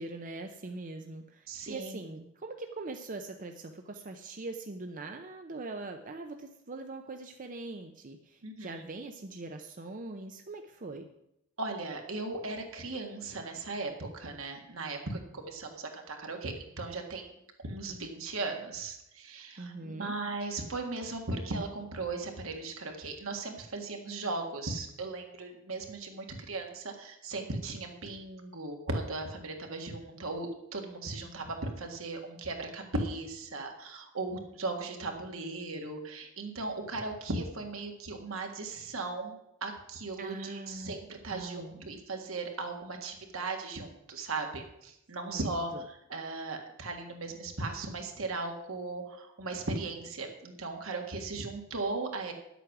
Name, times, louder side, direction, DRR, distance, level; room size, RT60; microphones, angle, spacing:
voice 1, 0.0-11.1 19.6-20.2 40.2-40.9 41.3-41.9 45.3-45.8, right 2 dB, 40° right, 5 dB, 0.6 m, -42 dB
voice 2, 1.5-2.0 8.4-8.8 11.6-17.3 17.6-52.3, right 3 dB, 75° right, 3 dB, 1.8 m, -37 dB
10.5 x 8.1 x 6.0 m, 0.82 s
head